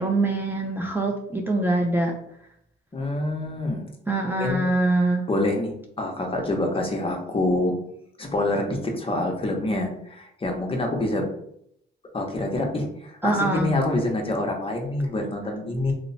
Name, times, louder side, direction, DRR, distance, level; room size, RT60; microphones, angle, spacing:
voice 1, 0.0-2.1 4.1-5.3 13.2-13.7, right 2 dB, 10° right, 0 dB, 0.5 m, -23 dB
voice 2, 2.9-3.8 4.4-4.7 5.3-7.7 8.2-11.2 12.1-15.9, left 2 dB, 30° left, 2 dB, 0.8 m, -26 dB
2.9 x 2.1 x 4.0 m, 0.72 s
cardioid pair, 90°, 20 cm